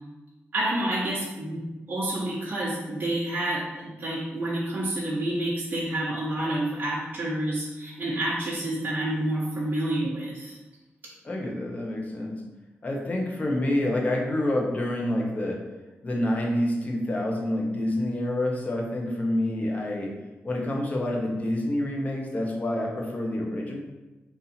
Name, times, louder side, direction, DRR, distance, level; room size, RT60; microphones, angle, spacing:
voice 1, 0.5-1.6 1.9-10.6, right 1 dB, 40° right, -8 dB, 1.0 m, -29 dB
voice 2, 11.2-12.4 12.8-15.6 16.0-20.1 20.4-23.8, left 1 dB, 35° left, -1 dB, 0.9 m, -27 dB
4.0 x 2.7 x 4.1 m, 1.1 s
wide cardioid pair, 105°, 4 cm